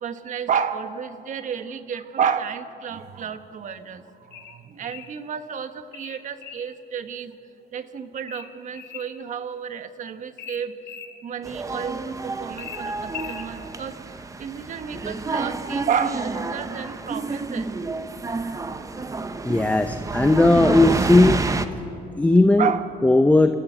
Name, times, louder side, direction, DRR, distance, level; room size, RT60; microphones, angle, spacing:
voice 1, 0.0-4.0 4.3-7.3 7.7-10.7 11.2-14.0 14.4-17.7 22.6-22.9, right 7 dB, 50° right, 9 dB, 1.3 m, -30 dB
sound 1, 4.3-5.2 5.9-6.7 8.3-9.1 10.4-11.1 12.6-13.5, left 8 dB, 75° left, 1.8 m, -39 dB
sound 2, 11.4-21.7, right 3 dB, 20° right, 1.0 m, -29 dB
voice 2, 19.4-21.4 22.2-22.7 23.0-23.5, left 2 dB, 10° left, 8 dB, 0.7 m, -17 dB
28.5 x 14.0 x 8.1 m, 2.7 s
cardioid pair, 110°, 17 cm